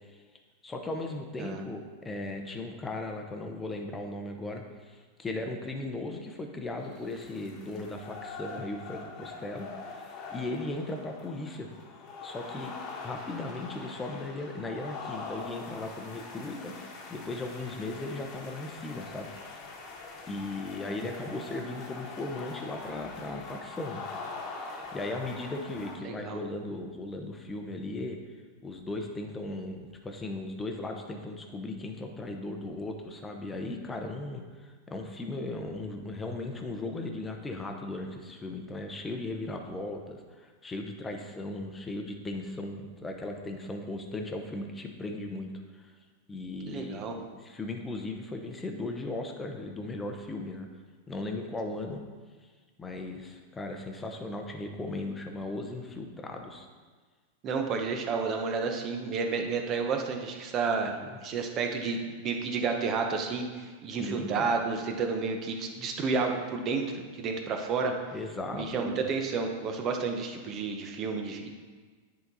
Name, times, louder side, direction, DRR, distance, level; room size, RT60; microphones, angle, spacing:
voice 1, 0.6-9.7 10.3-11.7 12.2-12.7 13.0-16.7 17.1-19.3 20.3-24.1 24.9-28.2 28.6-45.9 46.3-50.7 51.1-52.0 52.8-56.7 60.8-61.2 63.9-64.5 68.1-69.0, left 2 dB, 15° left, 3 dB, 0.8 m, -37 dB
sound 1, 6.8-26.0, left 4 dB, 40° left, 1.2 m, -43 dB
voice 2, 26.0-26.4 46.7-47.1 57.4-67.9 68.5-71.5, right 4 dB, 35° right, 3 dB, 0.9 m, -31 dB
9.8 x 4.0 x 4.0 m, 1.4 s
supercardioid pair, 135°, 0 cm